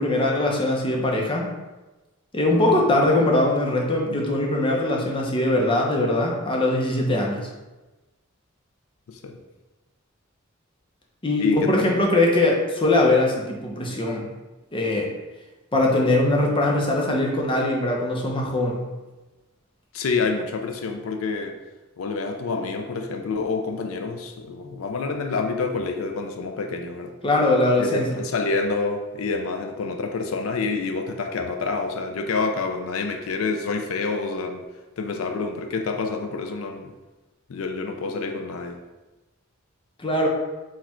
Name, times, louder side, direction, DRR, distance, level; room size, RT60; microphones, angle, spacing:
voice 1, 0.0-1.5 2.3-7.5 11.2-14.3 14.7-15.1 15.7-18.9 27.2-28.2 40.0-40.3, left 2 dB, 25° left, -1 dB, 0.7 m, -21 dB
voice 2, 11.4-11.9 19.9-21.6 22.0-27.1 27.8-34.6 35.0-36.9 37.5-38.8, left 4 dB, 75° left, 4 dB, 0.4 m, -27 dB
4.4 x 2.4 x 4.3 m, 1.1 s
head